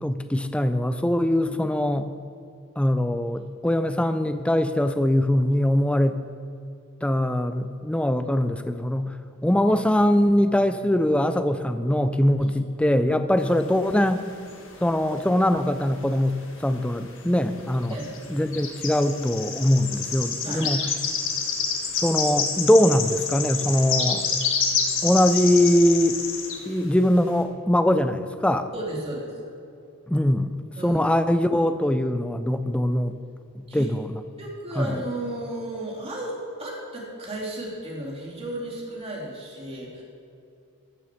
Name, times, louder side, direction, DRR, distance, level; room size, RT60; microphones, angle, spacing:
voice 1, 0.0-2.1 2.8-6.2 7.0-9.1 9.4-14.2 14.8-16.4 16.6-18.0 18.3-20.8 22.0-24.3 25.0-26.2 26.7-28.7 30.1-30.5 30.8-33.2 33.6-34.2 34.8-34.9, left 1 dB, 5° left, 10 dB, 0.4 m, -22 dB
sound 1, 13.4-15.1 15.4-16.6 16.9-17.1 17.7-26.6, left 5 dB, 60° left, 1.5 m, -28 dB
voice 2, 20.4-20.9 28.7-29.5 30.8-31.0 33.7-33.9 34.4-40.0, right 1 dB, 25° right, -3 dB, 2.6 m, -34 dB
14.0 x 7.0 x 6.0 m, 2.6 s
head